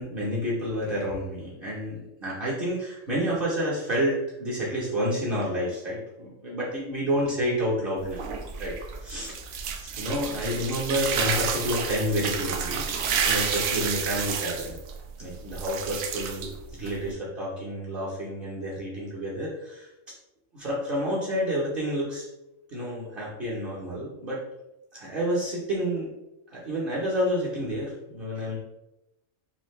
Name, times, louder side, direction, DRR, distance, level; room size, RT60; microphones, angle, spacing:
voice 1, 0.0-8.2 8.6-9.3 9.9-14.8 15.2-19.9 20.5-22.3 22.7-24.4 24.9-26.1 26.5-28.6, equal, 45° right, -8 dB, 1.1 m, -29 dB
sound 1, 8.0-17.1, right 6 dB, 85° right, 1.0 m, -30 dB
5.5 x 2.4 x 3.1 m, 0.93 s
omnidirectional pair, 1.4 m